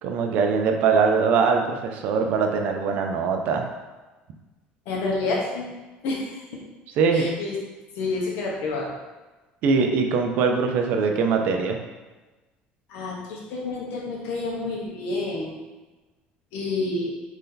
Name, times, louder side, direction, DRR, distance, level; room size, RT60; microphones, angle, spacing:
voice 1, 0.0-3.7 7.0-7.3 9.6-11.8, right 5 dB, 55° right, 4 dB, 0.4 m, -22 dB
voice 2, 4.9-5.7 6.0-6.4 7.1-7.5 8.0-8.9 12.9-15.6 16.5-17.1, left 3 dB, 65° left, -2 dB, 0.9 m, -29 dB
3.2 x 2.7 x 3.7 m, 1.2 s
cardioid pair, 170°, 3 cm